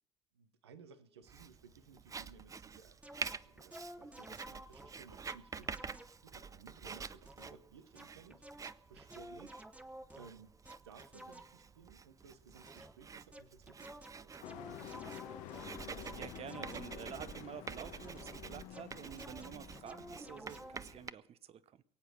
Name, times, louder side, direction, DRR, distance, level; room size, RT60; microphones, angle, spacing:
voice 1, 0.3-9.6 10.1-10.6 10.8-15.1, right 6 dB, 90° right, 11 dB, 0.9 m, -59 dB
Writing, 1.3-21.1, right 5 dB, 25° right, 0.6 m, -48 dB
sound 1, 3.0-6.3 7.3-11.8 12.7-13.1 13.3-17.1 18.0-20.9, right 1 dB, 10° right, 1.2 m, -53 dB
Truck, 14.4-21.1, left 14 dB, 65° left, 0.9 m, -50 dB
voice 2, 16.2-21.8, right 10 dB, 50° right, 16 dB, 0.9 m, -49 dB
22.5 x 8.3 x 6.3 m, 0.62 s
hypercardioid pair, 65°, 13 cm